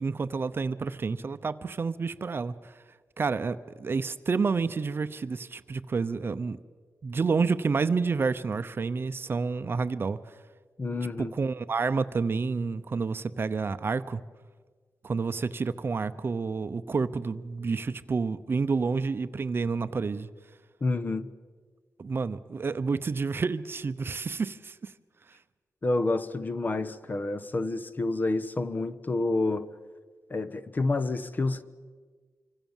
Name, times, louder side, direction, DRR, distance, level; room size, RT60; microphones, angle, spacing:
voice 1, 0.0-2.7 3.2-6.6 7.0-10.2 11.2-14.2 15.0-20.3 22.0-24.9, right 4 dB, 40° right, 0.8 m, -29 dB
voice 2, 10.8-11.3 20.8-21.3 25.8-29.7 30.3-31.6, left 2 dB, 30° left, 1.0 m, -28 dB
26.0 x 25.0 x 7.3 m
wide cardioid pair, 160°, 6 cm